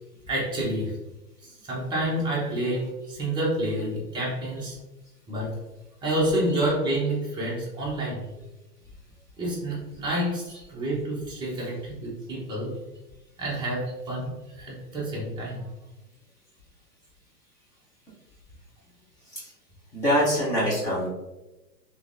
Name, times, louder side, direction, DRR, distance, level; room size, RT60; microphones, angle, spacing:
voice 1, 0.3-0.9 1.4-4.8 5.3-5.6 6.0-8.4 9.4-12.7 13.4-15.7, right 1 dB, 10° right, -6 dB, 0.8 m, -29 dB
voice 2, 19.9-21.1, equal, 10° left, -7 dB, 0.4 m, -24 dB
3.6 x 3.0 x 2.5 m, 1.0 s
hypercardioid pair, 140°, 48 cm